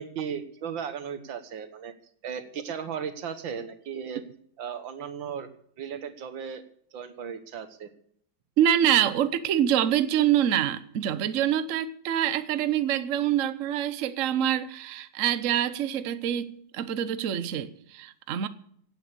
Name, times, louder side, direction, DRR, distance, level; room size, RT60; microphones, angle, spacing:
voice 1, 0.0-1.9 2.2-4.2 4.6-5.5 5.8-6.6 6.9-7.9, right 7 dB, 85° right, 2.0 m, -36 dB
voice 2, 8.6-18.5, right 10 dB, 55° right, 1.0 m, -25 dB
17.0 x 8.7 x 6.9 m
omnidirectional pair, 2.0 m